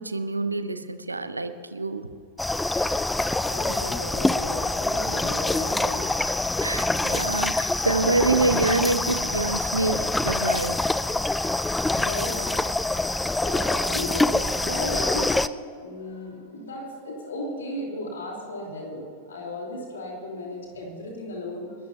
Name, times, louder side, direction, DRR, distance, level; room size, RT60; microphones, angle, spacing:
voice 1, 0.0-2.1 6.6-10.8, right 2 dB, 80° right, 11 dB, 0.8 m, -26 dB
sound 1, 2.4-15.5, left 2 dB, 5° left, 0.4 m, -25 dB
voice 2, 2.7-6.2 11.4-11.6 11.8-12.6 12.9-15.4 15.8-21.7, left 1 dB, 65° left, -1 dB, 3.8 m, -35 dB
29.5 x 13.0 x 2.9 m, 2.7 s
figure-of-eight pair, 90°, 0 cm